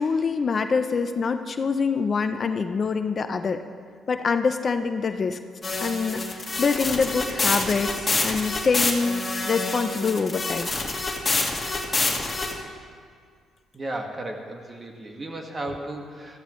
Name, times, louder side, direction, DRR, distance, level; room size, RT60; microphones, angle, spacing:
voice 1, 0.0-3.6 4.1-5.4 5.8-10.7, left 5 dB, 40° left, 9 dB, 0.6 m, -25 dB
sound 1, 5.6-12.5, left 3 dB, 25° left, 1.8 m, -27 dB
voice 2, 13.7-16.4, right 1 dB, 30° right, 2 dB, 1.7 m, -34 dB
15.5 x 14.0 x 3.2 m, 2.1 s
cardioid pair, 90°, 0 cm